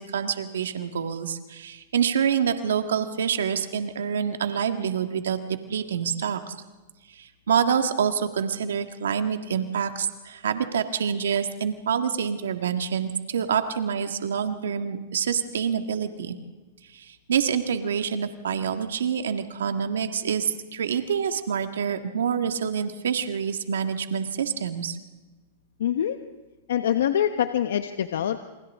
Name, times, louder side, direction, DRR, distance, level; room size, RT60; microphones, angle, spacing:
voice 1, 0.0-6.6 7.1-16.4 16.9-25.0, right 7 dB, 90° right, 7 dB, 1.8 m, -27 dB
voice 2, 25.8-26.2 26.7-28.4, left 10 dB, 80° left, 8 dB, 1.2 m, -24 dB
29.5 x 28.5 x 3.7 m, 1.2 s
hypercardioid pair, 130°, 0 cm